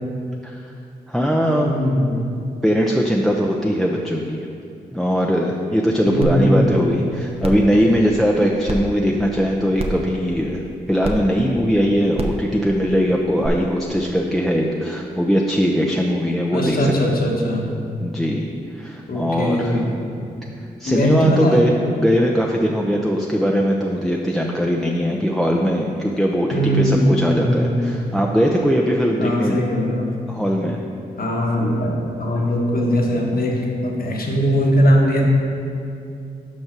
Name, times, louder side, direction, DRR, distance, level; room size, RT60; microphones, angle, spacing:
voice 1, 1.1-1.7 2.6-4.4 4.9-10.6 10.9-16.9 18.0-19.8 20.8-29.6 30.3-30.8, equal, ahead, 0 dB, 0.7 m, -20 dB
voice 2, 1.6-2.4 6.1-7.0 16.5-17.7 19.1-19.9 20.8-21.6 26.5-27.9 29.2-30.1 31.2-35.3, equal, 60° left, -1 dB, 1.5 m, -20 dB
sound 1, 6.2-6.3 6.8-6.9 7.4-7.7 8.7-8.8 9.8-10.0 11.0-11.1 12.1-12.4 13.4-13.5, right 2 dB, 35° right, 0.9 m, -26 dB
5.5 x 5.5 x 6.0 m, 2.5 s
supercardioid pair, 45°, 17 cm